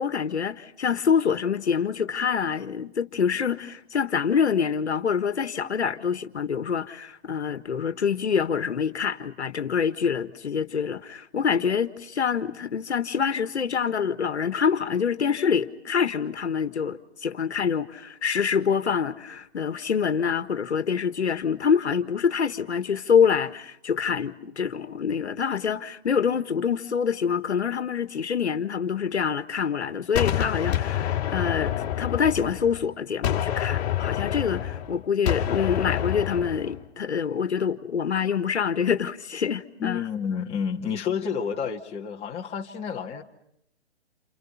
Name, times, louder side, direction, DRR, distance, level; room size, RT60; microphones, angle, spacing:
voice 1, 0.0-40.1, left 7 dB, 70° left, 1.7 m, -26 dB
Gunshot gunfire, 30.2-32.9 33.2-36.8, left 11 dB, 35° left, 2.9 m, -27 dB
voice 2, 39.8-43.2, left 7 dB, 20° left, 2.3 m, -30 dB
29.0 x 29.0 x 5.8 m
hypercardioid pair, 135°, 34 cm